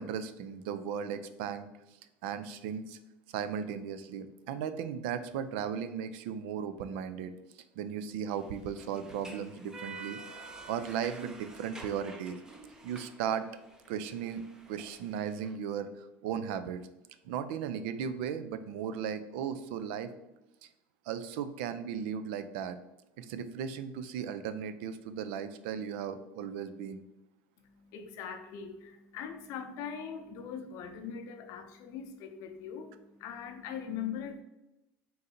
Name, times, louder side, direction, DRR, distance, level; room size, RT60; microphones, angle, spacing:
voice 1, 0.0-1.7 2.2-3.0 3.3-7.3 7.8-10.2 10.7-12.4 12.8-13.5 13.9-14.4 14.7-16.8 17.2-20.1 21.1-22.8 23.2-27.0, right 8 dB, 80° right, 11 dB, 0.4 m, -36 dB
sound 1, 8.3-15.5, right 3 dB, 10° right, 0.4 m, -49 dB
voice 2, 27.6-34.4, left 7 dB, 60° left, 6 dB, 0.6 m, -41 dB
3.8 x 2.6 x 4.1 m, 0.96 s
cardioid pair, 145°, 6 cm